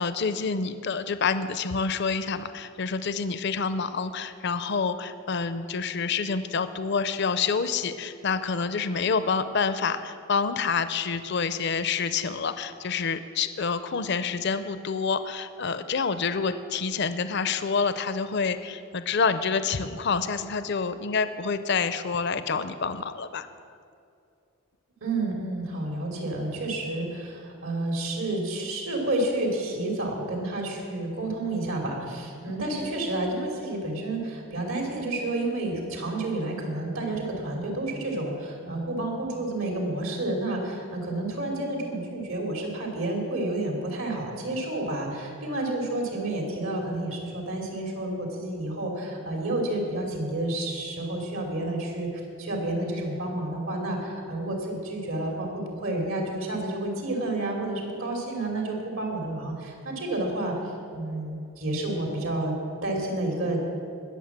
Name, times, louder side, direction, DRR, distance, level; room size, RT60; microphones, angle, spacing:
voice 1, 0.0-23.5, left 5 dB, 55° left, 11 dB, 0.5 m, -27 dB
voice 2, 25.0-60.5 60.9-62.5 62.8-63.6, right 2 dB, 75° right, 1 dB, 3.1 m, -30 dB
20.0 x 7.2 x 7.4 m, 2.5 s
head